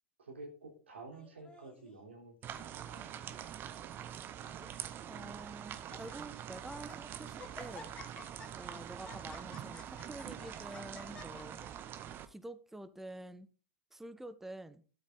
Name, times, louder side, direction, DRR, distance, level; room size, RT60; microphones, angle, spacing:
voice 1, 0.2-3.5, right 2 dB, 75° right, 2 dB, 3.4 m, -51 dB
Laughter, 1.1-1.9 2.6-3.0 3.3-3.4 4.1-4.8 5.3-5.4 5.7-6.2 6.6-7.0 7.4-12.2, left 4 dB, 15° left, 3.2 m, -53 dB
sound 1, 2.4-12.3, right 10 dB, 35° right, 1.1 m, -45 dB
voice 2, 5.1-7.9 8.6-11.6 12.2-13.5 13.9-14.8, right 1 dB, 5° right, 12 dB, 1.0 m, -48 dB
12.5 x 7.9 x 3.8 m, 0.37 s
figure-of-eight pair, 90°, 6 cm